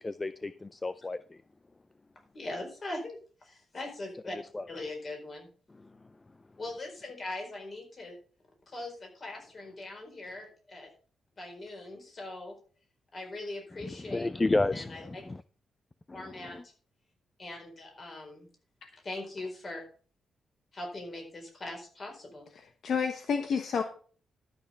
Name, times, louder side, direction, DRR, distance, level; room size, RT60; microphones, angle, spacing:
voice 1, 0.0-1.4 4.5-4.7 5.7-6.2 13.8-15.4 16.1-16.6, left 2 dB, 20° left, 14 dB, 0.4 m, -32 dB
voice 2, 2.3-4.4 4.7-5.5 6.6-8.2 8.7-10.9 11.4-12.6 13.1-14.3 14.7-15.2 16.1-16.7 17.4-18.5 19.0-19.8 20.7-22.5, left 2 dB, 35° left, 2 dB, 4.5 m, -41 dB
voice 3, 22.6-23.8, left 6 dB, 60° left, 6 dB, 1.2 m, -30 dB
12.5 x 6.4 x 5.6 m, 0.42 s
wide cardioid pair, 135°, 0 cm